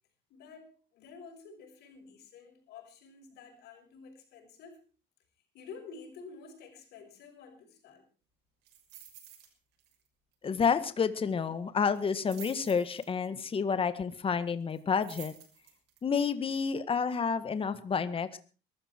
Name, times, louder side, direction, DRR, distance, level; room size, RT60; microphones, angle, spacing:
voice 1, 0.3-4.8 5.5-8.0, left 5 dB, 80° left, 5 dB, 6.2 m, -50 dB
sound 1, 8.7-9.5 9.8-10.1 10.3-10.4 11.9-13.4 14.7-16.0 16.5-16.6, right 11 dB, 85° right, 6.3 m, -50 dB
voice 2, 10.4-15.3 16.0-18.4, left 6 dB, 35° left, 12 dB, 1.7 m, -29 dB
22.0 x 13.5 x 4.6 m, 0.37 s
cardioid pair, 110°, 17 cm